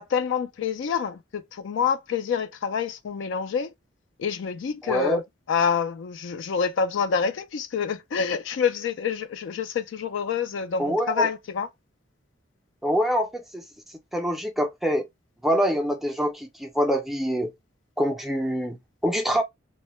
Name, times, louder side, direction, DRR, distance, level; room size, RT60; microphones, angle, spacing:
voice 1, 0.0-3.7 4.2-5.2 5.5-11.7, left 6 dB, 65° left, 0.3 m, -27 dB
voice 2, 4.8-5.2 10.8-11.3 12.8-15.1 15.4-17.5 18.0-19.4, equal, ahead, 0.4 m, -25 dB
2.1 x 2.1 x 3.0 m
head